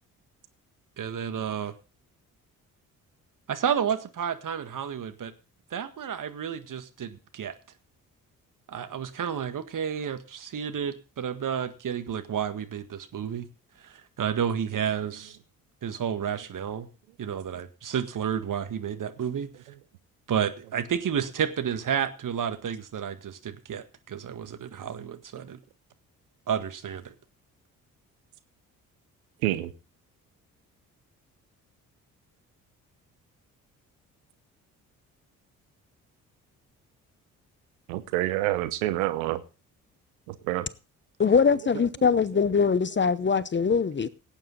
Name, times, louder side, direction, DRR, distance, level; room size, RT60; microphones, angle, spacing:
voice 1, 1.0-1.7 3.5-5.3 5.7-7.5 8.7-13.5 13.8-15.4 15.8-16.9 17.2-19.5 20.3-25.6 26.5-27.1, right 8 dB, 45° right, 1.8 m, -31 dB
voice 2, 37.9-39.4 40.3-40.7, right 16 dB, 75° right, 0.9 m, -27 dB
voice 3, 41.2-44.1, left 5 dB, 25° left, 0.8 m, -22 dB
17.5 x 9.0 x 3.9 m
hypercardioid pair, 45°, 43 cm